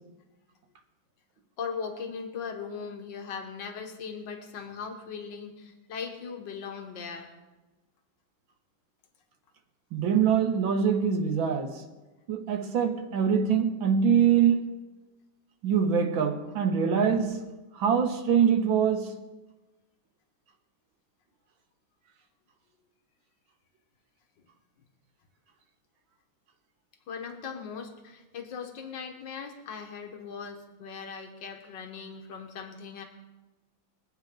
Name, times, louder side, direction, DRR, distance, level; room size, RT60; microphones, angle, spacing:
voice 1, 1.6-7.3 27.1-33.0, left 6 dB, 70° left, 2.0 m, -39 dB
voice 2, 9.9-11.8 12.3-14.7 15.6-17.4 17.8-19.2, right 7 dB, 85° right, 2.0 m, -24 dB
23.0 x 8.9 x 3.8 m
omnidirectional pair, 2.1 m